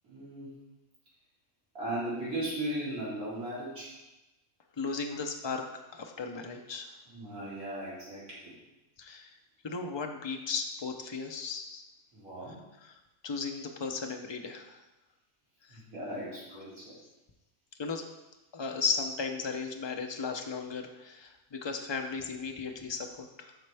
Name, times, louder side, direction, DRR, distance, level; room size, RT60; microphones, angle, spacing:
voice 1, 0.0-0.5 1.7-3.9 7.1-8.6 12.1-12.6 15.7-17.0, right 1 dB, 80° right, -9 dB, 3.0 m, -37 dB
voice 2, 4.8-6.9 9.0-9.3 9.6-11.8 12.8-14.8 15.6-15.8 16.8-16.9 17.8-18.0 18.5-23.5, left 4 dB, 40° left, 4 dB, 0.4 m, -36 dB
12.5 x 4.3 x 3.4 m, 1.0 s
omnidirectional pair, 1.5 m